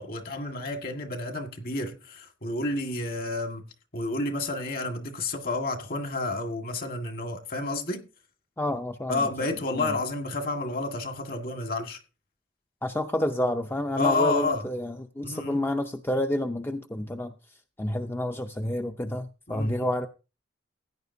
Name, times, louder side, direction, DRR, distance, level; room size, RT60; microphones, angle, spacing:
voice 1, 0.0-3.6 3.9-8.1 9.1-12.0 14.0-14.6 15.2-15.6 19.5-19.9, left 2 dB, 50° left, 1.7 m, -30 dB
voice 2, 8.6-9.3 9.7-9.9 12.8-17.3 17.8-20.1, left 1 dB, 10° left, 0.5 m, -29 dB
16.0 x 10.0 x 2.7 m
head